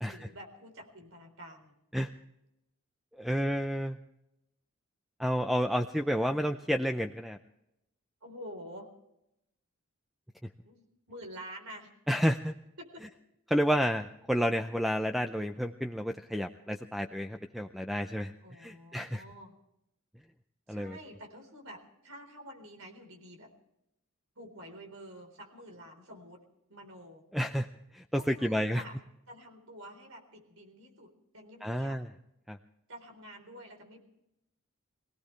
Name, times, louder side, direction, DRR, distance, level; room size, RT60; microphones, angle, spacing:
voice 1, 0.1-1.8 3.3-3.4 8.2-8.9 10.6-11.9 12.8-13.1 18.4-19.5 20.7-23.5 24.4-26.4 26.7-27.2 28.2-29.0 29.3-32.0 32.9-34.0, equal, 75° right, 4 dB, 4.1 m, -48 dB
voice 2, 3.2-4.0 5.2-7.4 12.1-12.5 13.5-19.2 20.7-21.0 27.3-27.7 27.9-28.8 31.6-32.1 32.5-32.6, equal, ahead, 7 dB, 0.5 m, -30 dB
23.0 x 17.5 x 3.3 m, 0.83 s
head